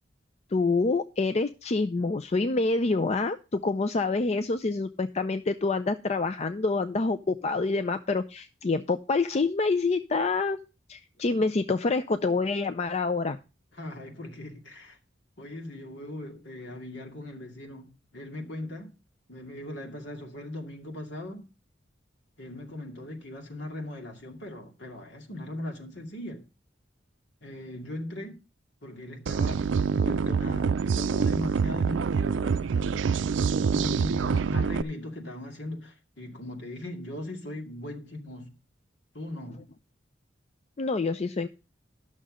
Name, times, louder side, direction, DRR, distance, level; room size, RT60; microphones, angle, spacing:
voice 1, 0.5-10.6 10.9-13.4 40.8-41.5, left 3 dB, 35° left, 0.4 m, -27 dB
voice 2, 13.7-15.0 15.4-18.9 19.3-21.5 22.4-26.4 27.4-28.4 28.8-33.1 33.7-38.5 39.1-39.7, left 1 dB, 70° left, 2.3 m, -39 dB
sound 1, 29.3-34.8, right 5 dB, 80° right, 0.4 m, -26 dB
11.5 x 6.5 x 4.9 m
head